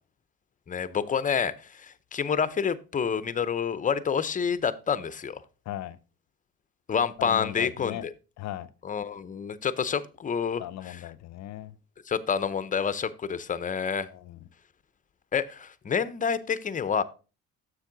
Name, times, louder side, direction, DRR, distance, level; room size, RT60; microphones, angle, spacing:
voice 1, 0.7-5.4 6.9-8.0 8.8-11.0 12.1-14.1 15.3-17.0, left 6 dB, 25° left, 0.6 m, -28 dB
voice 2, 5.7-6.0 7.2-8.1 8.4-8.7 10.6-11.8 14.1-14.5, left 12 dB, 65° left, 0.6 m, -38 dB
7.4 x 6.4 x 3.8 m
cardioid pair, 90°, 30 cm